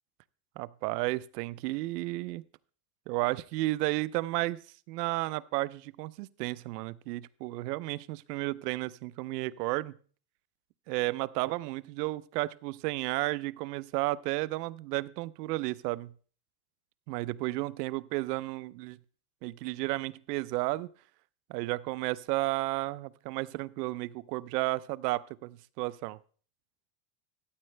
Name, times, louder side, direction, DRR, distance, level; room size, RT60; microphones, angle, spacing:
voice 1, 0.6-2.4 3.1-4.6 4.9-9.9 10.9-16.1 17.1-19.0 19.4-20.9 21.5-26.2, right 19 dB, 80° right, 18 dB, 0.7 m, -33 dB
14.0 x 8.6 x 3.3 m, 0.42 s
supercardioid pair, 145°, 47 cm